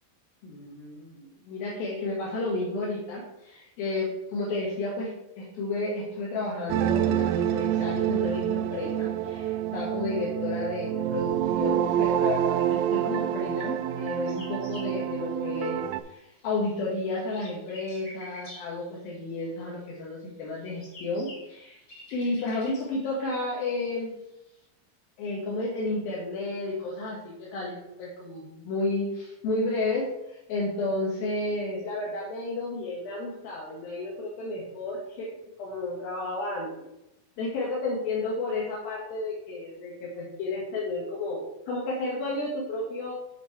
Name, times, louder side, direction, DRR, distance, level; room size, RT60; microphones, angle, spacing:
voice 1, 0.4-21.8 22.1-24.1 25.2-36.8 37.4-43.1, left 2 dB, 80° left, -4 dB, 3.1 m, -32 dB
sound 1, 6.7-16.0, right 11 dB, 90° right, 2.4 m, -27 dB
sound 2, 13.8-16.0 16.3-19.8 20.4-24.7, left 1 dB, 35° left, 2.6 m, -50 dB
7.6 x 5.5 x 4.6 m, 0.89 s
omnidirectional pair, 4.2 m